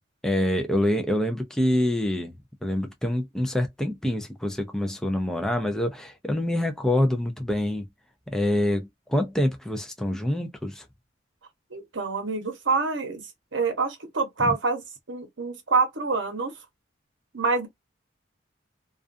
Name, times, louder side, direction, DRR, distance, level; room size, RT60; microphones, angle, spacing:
voice 1, 0.2-2.3 2.6-7.9 8.3-10.8 14.4-14.5, left 1 dB, 5° left, 0.3 m, -26 dB
voice 2, 11.7-13.2 13.5-14.8 15.1-16.5 17.3-17.7, right 4 dB, 65° right, 0.8 m, -26 dB
2.4 x 2.3 x 2.5 m
head